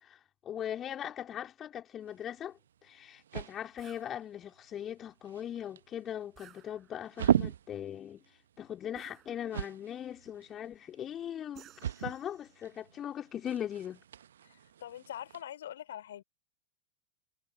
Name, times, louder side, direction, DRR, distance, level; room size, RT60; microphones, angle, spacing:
voice 1, 0.0-8.2 8.6-14.0, left 10 dB, 25° left, 3.2 m, -40 dB
sound 1, 2.0-15.4, right 9 dB, 65° right, 1.2 m, -39 dB
sound 2, 3.8-4.1 6.4-7.2 9.0-9.8 11.6-12.7, right 11 dB, 30° right, 8.0 m, -57 dB
voice 2, 14.4-16.2, left 11 dB, 60° left, 4.4 m, -44 dB
figure-of-eight pair, 90°, 0 cm